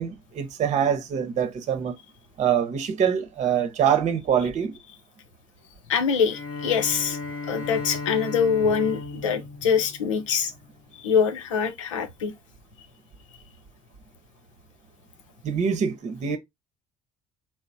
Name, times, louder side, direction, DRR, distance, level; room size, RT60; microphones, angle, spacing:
voice 1, 0.0-1.9 2.4-4.7 15.4-16.4, right 8 dB, 45° right, 0.8 m, -24 dB
voice 2, 5.9-7.2 7.5-10.5 11.0-12.3, left 6 dB, 85° left, 0.6 m, -24 dB
Bowed string instrument, 6.3-10.7, left 3 dB, 60° left, 0.9 m, -36 dB
2.9 x 2.1 x 3.9 m
hypercardioid pair, 55°, 16 cm